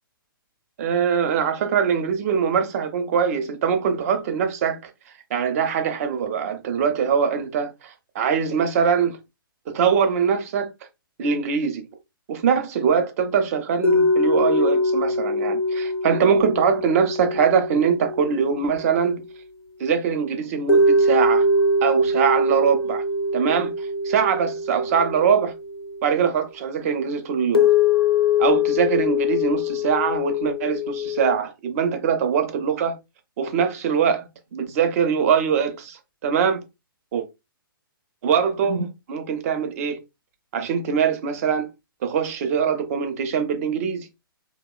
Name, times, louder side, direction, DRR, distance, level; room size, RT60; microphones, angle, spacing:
voice 1, 0.8-4.8 5.3-9.2 9.7-10.7 11.2-11.9 12.3-19.2 19.8-21.5 21.8-23.0 23.3-23.7 24.0-25.5 26.0-27.7 28.4-33.0 33.4-36.6 37.1-37.2 38.2-40.0 40.5-41.7 42.0-44.1, right 7 dB, 40° right, 0.6 m, -22 dB
sound 1, 13.8-19.3 20.7-26.1 27.5-31.4, left 2 dB, 90° left, 0.5 m, -22 dB
2.9 x 2.2 x 2.2 m
figure-of-eight pair, 125°, 12 cm